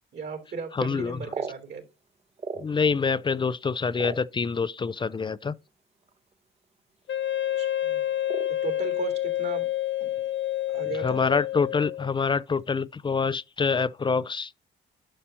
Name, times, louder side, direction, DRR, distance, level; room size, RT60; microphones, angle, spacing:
voice 1, 0.1-1.8 7.6-8.0 8.5-9.7 10.0-10.3 10.7-11.2, right 5 dB, 60° right, 3.2 m, -36 dB
voice 2, 0.7-1.2 2.6-5.6 11.0-14.5, left 5 dB, 25° left, 0.4 m, -26 dB
sound 1, 0.9-3.1 3.4-4.9 5.7-5.8 6.0-6.3 6.6-7.1 7.3-7.6 8.2-9.2 9.5-10.4 10.7-10.8 11.2-11.5 11.9-12.3, right 5 dB, 30° right, 1.0 m, -39 dB
Wind instrument woodwind instrument, 7.1-12.2, left 13 dB, 70° left, 0.8 m, -28 dB
11.0 x 5.8 x 2.8 m
cardioid pair, 90°, 20 cm